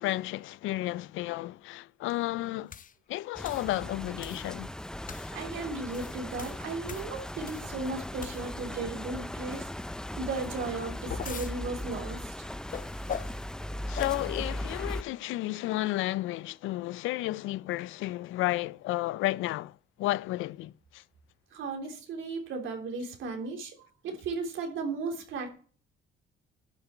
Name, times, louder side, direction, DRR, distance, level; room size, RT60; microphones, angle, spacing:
voice 1, 0.0-2.7 3.1-4.7 13.9-21.0, left 17 dB, 90° left, 0.4 m, -32 dB
sound 1, 2.7-2.9 3.4-3.7 4.2-4.5 5.1-5.3 5.8-7.8 8.2-8.7 10.6-11.5 12.7-13.4 13.9-14.3, left 8 dB, 45° left, 0.7 m, -40 dB
sound 2, 3.3-15.0, left 1 dB, 5° left, 0.4 m, -38 dB
voice 2, 5.1-9.8 10.2-12.5 21.5-25.5, right 3 dB, 80° right, 3.5 m, -36 dB
11.5 x 7.6 x 4.4 m
cardioid pair, 90°, 20 cm